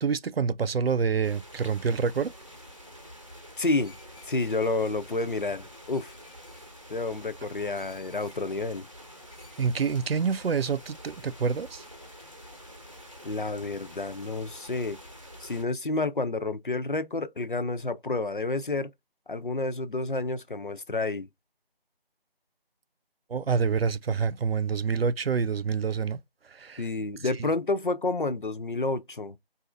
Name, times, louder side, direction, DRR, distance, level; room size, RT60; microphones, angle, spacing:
voice 1, 0.0-2.3 9.6-11.8 23.3-26.2 26.5-26.8, right 6 dB, 75° right, 0.5 m, -27 dB
sound 1, 1.2-15.6, equal, 35° right, 0.7 m, -48 dB
voice 2, 3.6-4.0 4.3-6.1 6.9-8.9 13.2-15.0 15.4-18.9 19.3-21.3 26.8-29.4, left 3 dB, 55° left, 0.5 m, -30 dB
Screech, 3.8-4.8 5.9-6.7 7.7-8.4 9.3-10.0, left 2 dB, ahead, 0.7 m, -57 dB
4.0 x 2.5 x 2.4 m
figure-of-eight pair, 175°, 30 cm